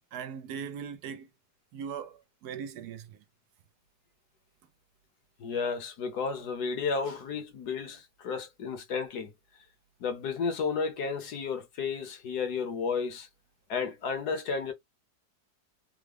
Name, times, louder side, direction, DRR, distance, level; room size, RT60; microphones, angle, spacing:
voice 1, 0.1-1.3 1.7-3.2, right 7 dB, 70° right, 1.1 m, -39 dB
voice 2, 5.4-9.3 10.0-13.3 13.7-14.7, left 5 dB, 70° left, 1.4 m, -32 dB
3.7 x 2.1 x 3.3 m
omnidirectional pair, 1.8 m